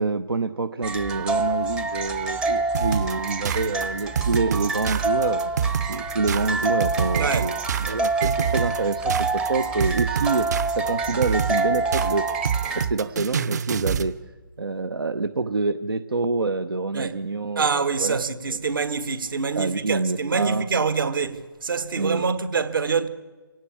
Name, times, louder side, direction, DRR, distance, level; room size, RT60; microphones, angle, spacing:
voice 1, 0.0-5.5 5.9-12.3 12.7-14.1 14.6-18.2 18.5-18.6 19.5-20.7 22.0-22.3, right 3 dB, 90° right, 1.0 m, -27 dB
sound 1, 0.8-12.9, right 3 dB, 5° right, 0.6 m, -27 dB
sound 2, 2.7-14.1, right 7 dB, 50° right, 0.9 m, -27 dB
voice 2, 7.2-7.5 16.9-17.2 17.6-23.1, right 5 dB, 65° right, 1.7 m, -25 dB
25.5 x 17.5 x 8.5 m
hypercardioid pair, 155°, 12 cm